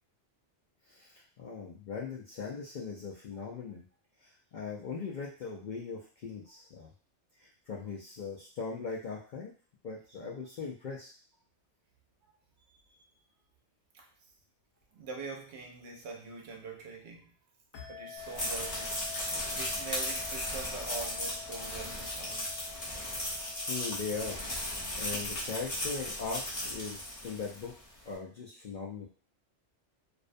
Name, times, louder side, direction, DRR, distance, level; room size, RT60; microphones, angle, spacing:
voice 1, 0.9-3.8 4.2-6.9 7.4-9.5 9.8-11.1 23.7-27.7 28.0-29.1, left 5 dB, 60° left, -5 dB, 0.5 m, -40 dB
voice 2, 12.3-13.1 13.9-14.3 14.9-17.3 17.9-22.7, right 4 dB, 70° right, 1 dB, 0.8 m, -44 dB
sound 1, 17.7-25.9, left 10 dB, 80° left, 0.9 m, -49 dB
sound 2, 18.2-27.7, left 1 dB, 30° left, 0.8 m, -36 dB
2.5 x 2.1 x 2.5 m, 0.38 s
omnidirectional pair, 1.2 m